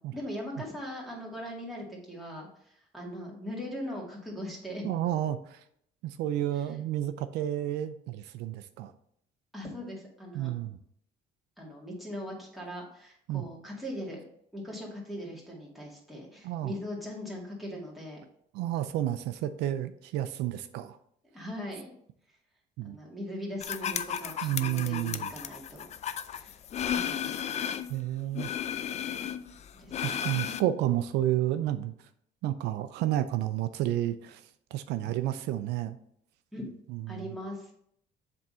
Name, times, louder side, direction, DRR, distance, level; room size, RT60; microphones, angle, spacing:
voice 1, 0.0-4.9 9.5-10.5 11.6-14.2 14.5-18.2 21.3-21.9 22.8-25.9 26.3-26.5 26.9-27.8 29.7-30.7 35.0-35.1 36.5-36.7 37.1-37.7, equal, ahead, -4 dB, 2.2 m, -40 dB
voice 2, 4.8-5.6 6.0-8.9 10.3-10.8 13.3-13.5 16.4-16.7 18.5-21.0 22.8-23.0 24.4-25.3 27.9-28.5 30.0-31.9 32.4-34.4 34.7-36.0 36.9-37.4, right 13 dB, 85° right, 11 dB, 0.4 m, -31 dB
sound 1, 23.6-28.0 28.3-30.6, left 9 dB, 40° left, 0.4 m, -34 dB
7.6 x 3.6 x 4.2 m, 0.69 s
cardioid pair, 110°, 17 cm